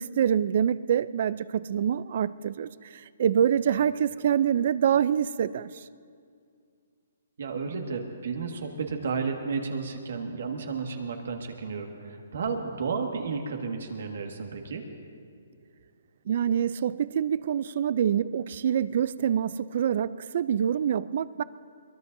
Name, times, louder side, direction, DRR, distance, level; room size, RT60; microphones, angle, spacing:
voice 1, 0.0-5.7 16.3-21.4, right 9 dB, 55° right, 17 dB, 0.4 m, -26 dB
voice 2, 7.4-14.8, right 5 dB, 70° right, 3 dB, 1.8 m, -32 dB
22.5 x 20.0 x 2.7 m, 2.3 s
hypercardioid pair, 150°, 0 cm